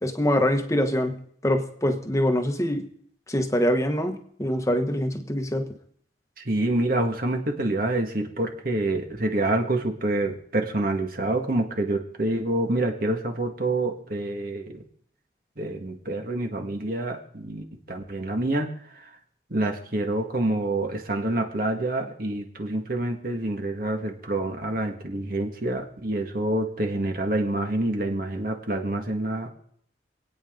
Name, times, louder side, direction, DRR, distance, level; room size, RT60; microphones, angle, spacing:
voice 1, 0.0-2.9 3.3-5.7, equal, 20° left, 6 dB, 1.1 m, -24 dB
voice 2, 6.4-14.8 15.6-18.7 18.9-19.1 19.5-29.5, right 1 dB, 55° right, 3 dB, 1.7 m, -27 dB
27.0 x 9.1 x 3.8 m, 0.65 s
head